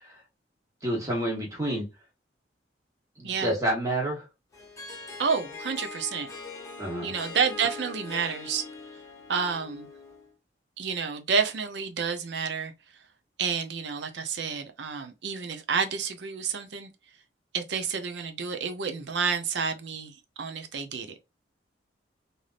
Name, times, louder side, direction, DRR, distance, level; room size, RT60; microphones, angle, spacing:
voice 1, 0.8-1.9 3.2-4.2 6.8-7.1, right 1 dB, 20° right, 1.2 m, -28 dB
Harp, 4.5-10.3, left 3 dB, 15° left, 0.9 m, -42 dB
voice 2, 5.2-6.3 7.0-8.6 9.3-9.9 10.8-12.7 13.4-16.9 17.5-21.2, right 6 dB, 70° right, 0.6 m, -29 dB
3.3 x 2.6 x 2.4 m
head